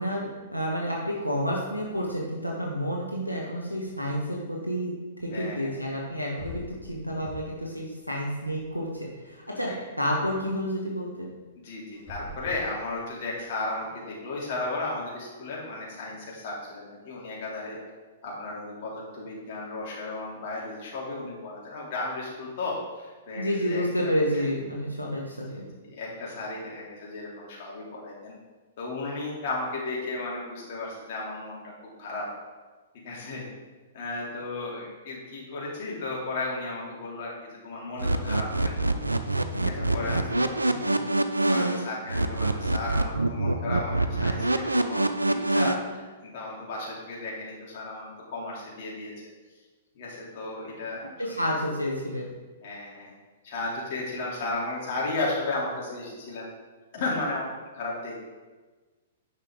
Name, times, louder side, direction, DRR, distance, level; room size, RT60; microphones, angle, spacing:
voice 1, 0.0-4.9 5.2-11.3 23.3-25.7 40.0-40.4 51.2-52.3, equal, 90° left, -3 dB, 1.2 m, -30 dB
voice 2, 5.3-5.9 9.7-9.8 11.6-17.8 18.2-24.5 25.5-28.4 28.8-31.7 32.0-32.3 32.9-33.5 33.9-38.8 39.5-40.6 40.9-41.1 41.5-49.1 49.9-51.5 52.6-53.1 53.4-56.5 56.9-58.2, left 2 dB, 45° left, -4 dB, 2.8 m, -34 dB
sound 1, 6.0-6.1 6.4-7.7 8.0-9.1 11.9-13.5, left 2 dB, 10° right, 2.3 m, -44 dB
sound 2, 38.0-45.8, right 2 dB, 80° right, 0.5 m, -25 dB
9.8 x 5.9 x 3.7 m, 1.3 s
figure-of-eight pair, 110°, 0 cm